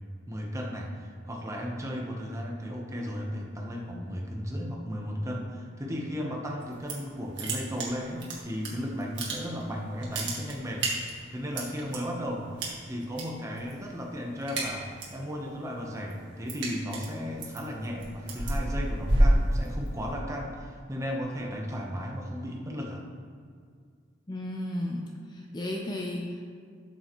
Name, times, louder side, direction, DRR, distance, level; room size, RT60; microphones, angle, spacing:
voice 1, 0.3-12.5 12.9-23.0, equal, 15° right, -1 dB, 0.9 m, -35 dB
sound 1, 6.6-7.1 7.4-8.7 9.0-9.7 10.0-12.0 12.6-13.2 13.5-13.9 14.2-15.2 15.6-20.1, right 1 dB, 60° right, 1.8 m, -29 dB
voice 2, 24.3-26.5, left 1 dB, 20° left, 0 dB, 0.6 m, -34 dB
13.5 x 6.6 x 3.1 m, 2.1 s
head